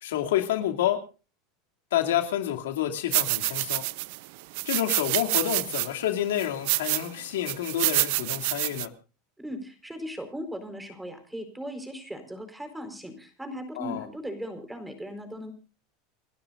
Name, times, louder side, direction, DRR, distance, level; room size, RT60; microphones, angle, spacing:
voice 1, 0.0-1.0 1.9-3.8 4.6-8.9 13.8-14.1, left 11 dB, 90° left, 5 dB, 2.6 m, -28 dB
sound 1, 3.1-4.2 4.5-5.9 6.4-7.1 7.5-8.9, right 23 dB, 70° right, 0.7 m, -27 dB
voice 2, 9.4-15.5, equal, 5° right, 8 dB, 4.4 m, -38 dB
29.5 x 12.0 x 2.6 m, 0.35 s
supercardioid pair, 120°, 0 cm